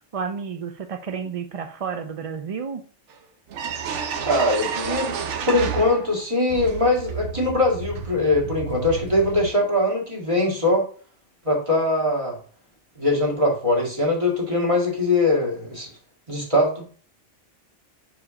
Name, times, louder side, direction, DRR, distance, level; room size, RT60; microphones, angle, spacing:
voice 1, 0.1-2.8, right 6 dB, 50° right, 7 dB, 0.4 m, -31 dB
sound 1, 3.1-3.2 3.5-6.2 6.5-9.5, right 7 dB, 75° right, 1.1 m, -31 dB
voice 2, 4.3-10.8 11.5-12.4 13.0-15.9 16.3-16.8, left 2 dB, 25° right, -1 dB, 2.0 m, -22 dB
5.0 x 4.8 x 4.9 m, 0.43 s
omnidirectional pair, 1.2 m